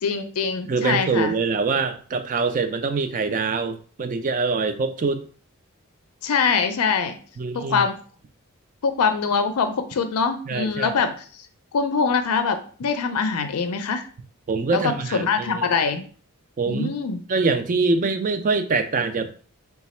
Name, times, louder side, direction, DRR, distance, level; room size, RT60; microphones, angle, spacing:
voice 1, 0.0-1.3 6.2-7.2 7.5-7.9 8.8-11.5 11.7-14.0 14.7-16.0 16.7-17.2, left 5 dB, 85° left, 8 dB, 0.4 m, -23 dB
voice 2, 0.7-5.2 7.4-7.9 10.5-10.9 14.5-15.7 16.6-16.9 17.3-19.3, right 4 dB, 35° right, 9 dB, 0.4 m, -24 dB
4.0 x 2.3 x 4.2 m, 0.42 s
head